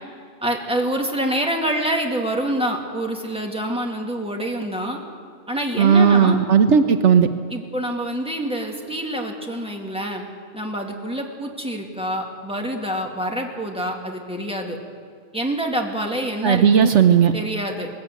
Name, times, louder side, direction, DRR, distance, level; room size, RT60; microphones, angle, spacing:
voice 1, 0.4-5.0 5.5-6.4 7.5-10.3 10.5-14.8 15.3-16.9 17.3-17.9, right 1 dB, 5° right, 1 dB, 2.3 m, -26 dB
voice 2, 5.8-7.3 16.4-17.3, right 7 dB, 70° right, 9 dB, 1.1 m, -15 dB
20.5 x 15.0 x 9.3 m, 2.1 s
omnidirectional pair, 1.3 m